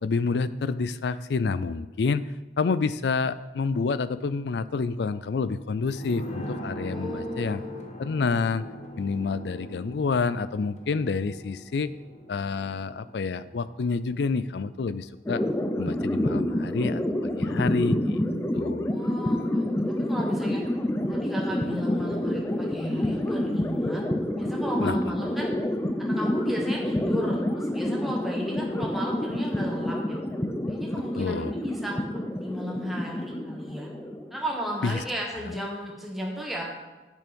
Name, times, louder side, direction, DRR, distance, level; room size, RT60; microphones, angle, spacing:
voice 1, 0.0-2.3 2.6-7.6 8.0-8.6 9.0-11.9 12.3-15.4 15.8-18.2 18.5-18.9 24.8-25.0 31.2-31.5 34.8-35.0, left 4 dB, 70° left, 15 dB, 0.4 m, -28 dB
sound 1, 5.9-15.2 15.4-15.5, equal, 40° left, 1.0 m, -41 dB
voice 2, 6.8-7.8 8.1-8.4 18.9-19.7 20.0-20.6 21.1-24.0 24.3-25.5 26.0-30.2 30.7-31.9 32.3-33.9 34.3-36.6, equal, ahead, -2 dB, 1.6 m, -34 dB
sound 2, 15.3-34.8, left 1 dB, 15° left, 0.5 m, -28 dB
8.4 x 7.0 x 5.3 m, 1.1 s
head